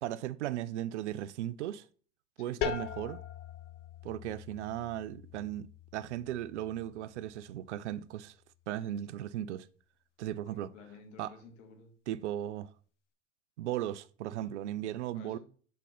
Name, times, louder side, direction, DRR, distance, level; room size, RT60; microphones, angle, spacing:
voice 1, 0.0-1.9 2.4-3.2 4.0-5.7 5.9-8.4 8.7-9.7 10.2-10.7 11.2-11.3 12.1-12.7 13.6-15.4, right 12 dB, 70° right, 0.5 m, -36 dB
sound 1, 2.6-8.1, left 8 dB, 75° left, 0.7 m, -42 dB
voice 2, 10.5-11.9 15.1-15.4, left 5 dB, 50° left, 1.7 m, -53 dB
4.3 x 4.1 x 5.4 m
hypercardioid pair, 80°, 36 cm